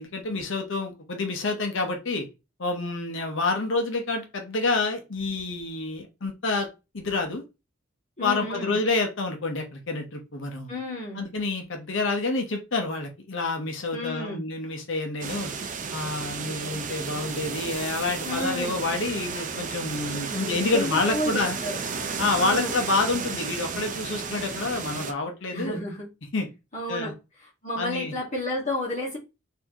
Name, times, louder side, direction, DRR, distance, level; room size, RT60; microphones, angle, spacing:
voice 1, 0.0-2.2 2.6-6.7 6.9-7.4 8.2-10.7 11.1-15.5 15.9-21.6 22.2-25.8 26.3-26.5 26.9-27.1 27.8-28.1, left 3 dB, 60° left, 0.9 m, -28 dB
voice 2, 8.2-8.7 10.7-11.3 13.9-14.4 18.2-18.8 20.3-21.8 22.4-22.7 25.5-26.1 26.7-27.1 27.6-29.2, left 1 dB, 35° left, 1.5 m, -31 dB
sound 1, 15.2-25.1, right 5 dB, 40° right, 0.5 m, -33 dB
4.3 x 2.8 x 2.8 m
head